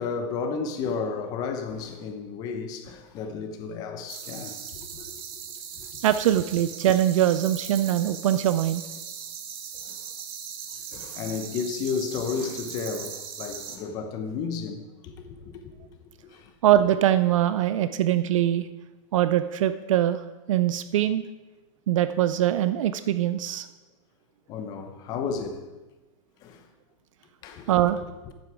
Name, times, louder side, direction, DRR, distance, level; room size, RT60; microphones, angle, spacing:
voice 1, 0.0-5.1 5.7-6.0 9.8-10.0 10.9-15.8 16.2-16.5 24.5-25.7 26.4-26.6 27.4-27.9 28.3-28.4, left 5 dB, 25° left, 0.7 m, -33 dB
sound 1, 4.1-13.8, right 8 dB, 45° right, 1.0 m, -39 dB
voice 2, 6.0-8.8 16.6-18.7 19.1-21.2 21.9-23.7 27.7-28.0, right 12 dB, 80° right, 0.4 m, -22 dB
9.1 x 7.8 x 4.8 m
supercardioid pair, 175°, 16 cm